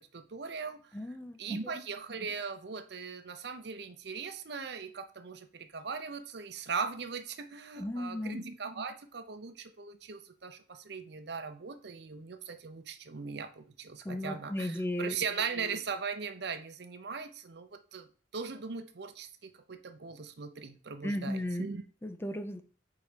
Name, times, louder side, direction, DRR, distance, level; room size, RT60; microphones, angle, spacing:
voice 1, 0.0-0.8 1.1-18.1 18.3-21.8, right 5 dB, 60° right, 0.6 m, -39 dB
voice 2, 0.9-1.6 7.8-8.4 14.0-15.2 21.0-21.6 22.0-22.6, left 1 dB, 10° left, 0.4 m, -35 dB
4.7 x 4.1 x 5.0 m
head